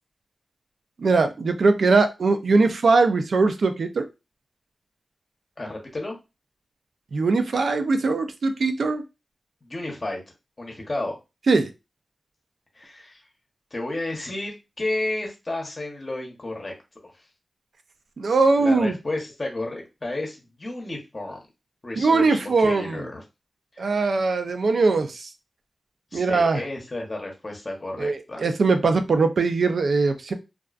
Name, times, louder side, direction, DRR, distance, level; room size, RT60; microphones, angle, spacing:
voice 1, 1.0-4.1 7.1-9.0 11.5-11.7 18.2-18.9 22.0-23.0 23.8-25.3 26.1-26.6 28.0-30.3, right 3 dB, 75° right, 8 dB, 0.4 m, -21 dB
voice 2, 5.6-6.2 9.6-10.2 10.6-11.2 12.7-13.2 13.7-16.7 18.5-21.4 21.8-23.2 23.7-24.0 26.1-28.4, left 2 dB, 35° left, 0 dB, 0.9 m, -32 dB
2.3 x 2.3 x 2.4 m, 0.25 s
wide cardioid pair, 65°, 0 cm